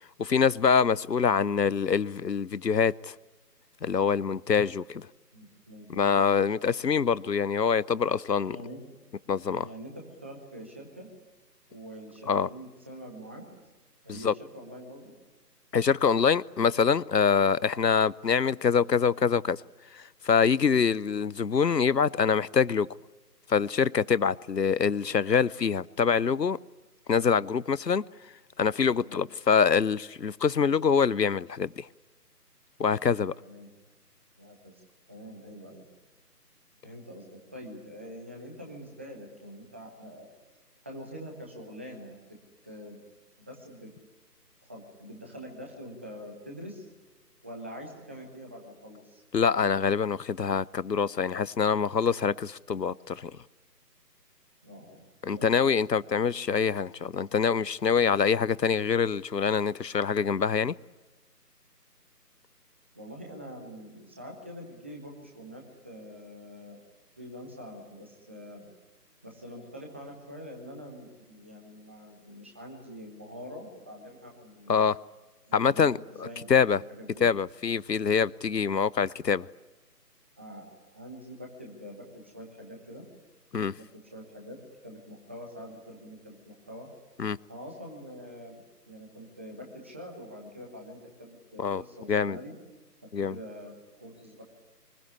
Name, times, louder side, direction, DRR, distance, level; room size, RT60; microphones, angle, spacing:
voice 1, 0.2-3.1 3.8-5.1 5.9-8.6 9.3-9.7 12.3-12.5 14.1-14.3 15.7-19.6 19.9-22.9 23.5-26.6 27.1-28.0 28.6-31.9 32.8-33.3 49.3-53.3 55.2-60.8 74.7-75.0 75.5-76.0 76.5-76.8 77.2-79.5 83.5-83.7 87.2-87.4 91.6-91.8 92.1-92.4 93.1-93.4, left 6 dB, 80° left, 0.9 m, -25 dB
voice 2, 5.3-6.7 8.5-8.8 9.6-11.1 11.7-13.5 14.0-15.1 29.0-29.2 33.4-33.7 34.4-34.8 35.1-35.8 36.8-40.3 40.8-42.4 42.6-43.0 43.4-43.9 44.6-46.9 47.4-49.2 54.6-56.1 62.9-66.8 67.2-68.7 69.2-74.9 75.5-77.3 80.4-80.7 80.9-83.0 83.7-86.9 87.5-88.6 88.9-92.6 93.0-94.4, equal, 10° right, 1.2 m, -45 dB
24.0 x 21.0 x 9.7 m
figure-of-eight pair, 160°, 49 cm